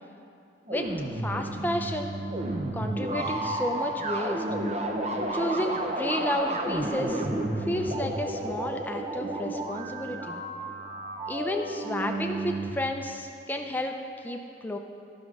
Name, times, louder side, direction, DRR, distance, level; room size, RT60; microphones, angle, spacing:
voice 1, 0.7-2.2 2.7-4.4 5.3-7.3 7.6-10.4 11.3-14.0 14.2-14.8, left 1 dB, 10° left, 3 dB, 0.5 m, -32 dB
sound 1, 0.7-12.7, right 1 dB, 35° right, 0.7 m, -31 dB
12.0 x 6.2 x 4.7 m, 2.5 s
head